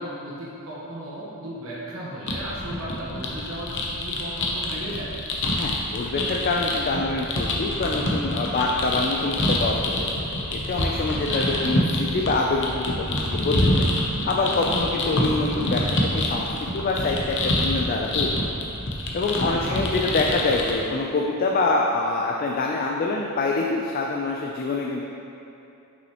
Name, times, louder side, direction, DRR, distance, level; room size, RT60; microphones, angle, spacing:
voice 1, 0.0-5.1 11.3-11.7 19.5-19.9, equal, 70° right, -7 dB, 1.0 m, -36 dB
sound 1, 2.3-20.7, left 1 dB, 55° left, 0.7 m, -26 dB
voice 2, 5.6-10.1 10.5-13.9 14.3-16.5 16.7-18.3 19.1-25.0, left 3 dB, 40° left, 0 dB, 0.3 m, -25 dB
6.2 x 5.4 x 2.9 m, 2.8 s
head